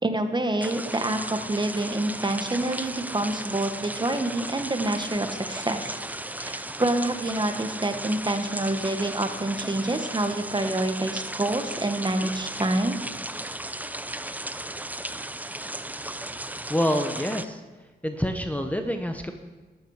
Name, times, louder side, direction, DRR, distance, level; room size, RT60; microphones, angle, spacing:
voice 1, 0.0-6.0 6.4-13.0, right 1 dB, 25° right, 7 dB, 1.3 m, -27 dB
sound 1, 0.6-17.5, right 1 dB, 10° right, 0.6 m, -35 dB
voice 2, 16.7-17.6 18.0-19.3, equal, 10° left, 6 dB, 1.0 m, -27 dB
12.5 x 10.0 x 4.9 m, 1.3 s
cardioid pair, 60°, 19 cm